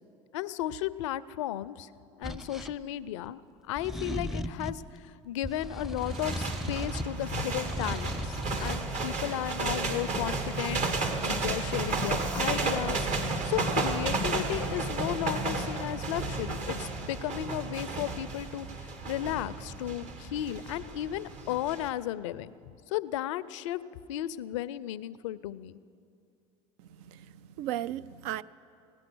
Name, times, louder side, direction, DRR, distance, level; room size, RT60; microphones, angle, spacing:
voice 1, 0.3-1.9 2.1-3.4 3.7-13.0 13.4-23.8 24.1-25.8, left 12 dB, 80° left, 0.4 m, -34 dB
sound 1, 2.2-2.7 3.8-4.9 5.4-7.2 7.5-8.8, equal, ahead, 0.6 m, -36 dB
sound 2, 6.0-21.9, right 3 dB, 50° right, 1.5 m, -32 dB
voice 2, 26.8-28.4, right 12 dB, 70° right, 0.4 m, -36 dB
18.0 x 9.6 x 6.1 m
hypercardioid pair, 80°, 16 cm